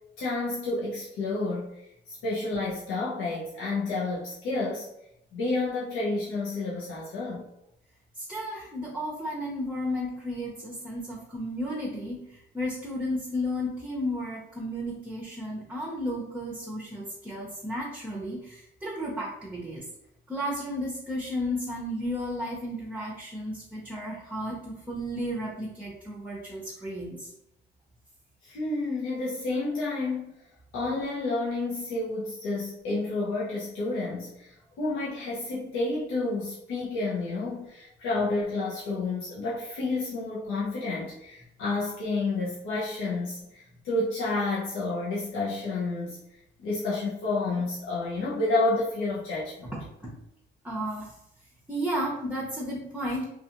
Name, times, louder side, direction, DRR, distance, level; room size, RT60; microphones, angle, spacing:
voice 1, 0.2-1.7 2.1-4.9 5.3-7.5 28.4-30.3 30.7-46.2 46.6-49.7, left 2 dB, 90° left, -7 dB, 0.7 m, -30 dB
voice 2, 8.2-19.8 20.3-27.3 49.7-50.1 50.6-51.1 51.7-53.2, equal, 5° right, -4 dB, 0.7 m, -33 dB
2.4 x 2.4 x 2.8 m, 0.82 s
cardioid pair, 90°, 20 cm